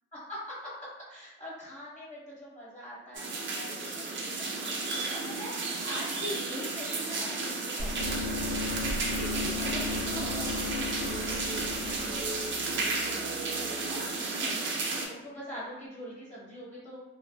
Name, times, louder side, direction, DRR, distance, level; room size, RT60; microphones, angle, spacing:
voice 1, 0.3-8.4 8.8-17.0, left 1 dB, 25° left, -7 dB, 1.1 m, -44 dB
sound 1, 3.1-15.1, right 3 dB, 40° right, 0.5 m, -33 dB
sound 2, 7.8-13.9, left 2 dB, 40° left, 0.6 m, -36 dB
2.5 x 2.2 x 2.2 m, 0.97 s
cardioid pair, 90°, 30 cm